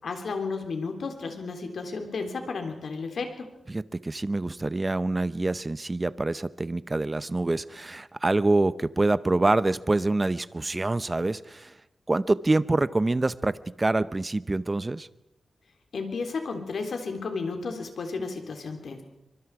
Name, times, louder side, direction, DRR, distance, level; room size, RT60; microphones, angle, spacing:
voice 1, 0.0-3.5 15.9-19.0, left 4 dB, 70° left, 5 dB, 3.5 m, -33 dB
voice 2, 3.7-11.7 12.1-15.1, right 2 dB, 25° right, 16 dB, 0.7 m, -26 dB
24.5 x 23.5 x 4.8 m, 0.90 s
wide cardioid pair, 115°, 0 cm